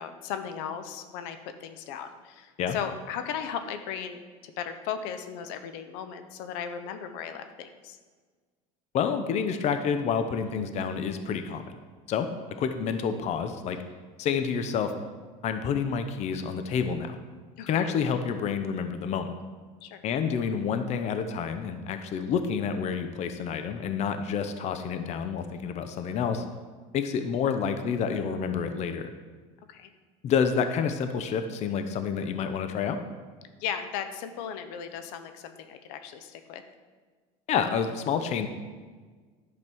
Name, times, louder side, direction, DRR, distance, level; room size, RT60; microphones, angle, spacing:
voice 1, 0.0-8.0 17.6-17.8 19.8-20.0 29.7-29.9 33.6-36.6, left 8 dB, 75° left, 8 dB, 0.9 m, -36 dB
voice 2, 8.9-11.6 12.1-13.8 14.2-14.9 15.4-17.2 17.7-19.3 20.0-26.4 26.9-29.1 30.2-33.0 37.5-38.5, left 6 dB, 45° left, 8 dB, 0.8 m, -28 dB
11.0 x 5.3 x 6.1 m, 1.5 s
supercardioid pair, 120°, 16 cm